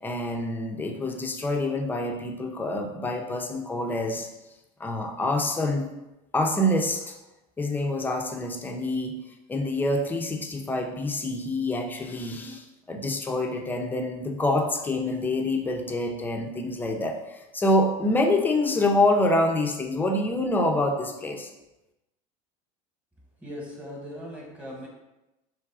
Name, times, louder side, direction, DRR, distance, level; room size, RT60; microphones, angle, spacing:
voice 1, 0.0-4.3 4.8-5.9 6.3-7.2 7.6-9.2 9.5-21.5, left 1 dB, 10° left, 2 dB, 0.5 m, -26 dB
voice 2, 23.4-24.9, equal, 5° right, -2 dB, 1.1 m, -39 dB
3.6 x 3.1 x 4.7 m, 0.97 s
supercardioid pair, 135°, 17 cm